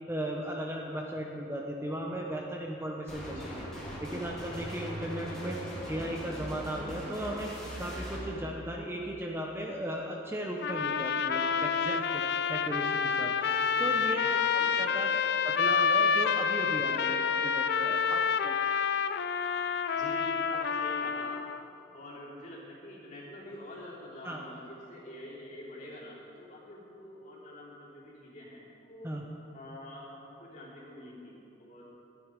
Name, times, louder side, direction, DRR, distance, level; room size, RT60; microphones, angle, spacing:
voice 1, 0.1-3.5 4.0-5.6 5.9-7.5 7.8-12.2 12.5-13.3 13.8-15.1 15.6-18.6 24.2-24.4 29.0-29.2, right 1 dB, 10° right, 0 dB, 0.7 m, -36 dB
sound 1, 3.1-8.3, equal, 5° left, 2.4 m, -40 dB
voice 2, 3.2-3.6 13.6-14.2 14.6-14.9 19.9-21.5 21.9-29.1 29.5-31.8, left 1 dB, 40° left, -7 dB, 3.1 m, -46 dB
sound 2, 10.6-21.6, left 6 dB, 55° left, 0.4 m, -28 dB
13.0 x 9.7 x 5.1 m, 2.9 s
head